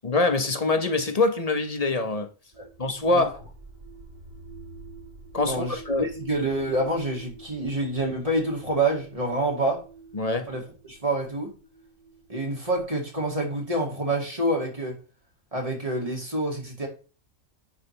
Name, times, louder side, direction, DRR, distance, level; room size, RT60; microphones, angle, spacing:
voice 1, 0.0-2.3 2.8-3.4 5.3-6.1 10.1-10.5, left 2 dB, 30° left, 1.0 m, -24 dB
sound 1, 2.5-14.3, right 3 dB, 65° right, 4.8 m, -47 dB
voice 2, 5.4-9.8 10.5-10.6 10.9-11.5 12.3-15.0 15.5-16.9, right 1 dB, 25° right, 2.5 m, -27 dB
10.0 x 5.1 x 3.3 m
omnidirectional pair, 1.4 m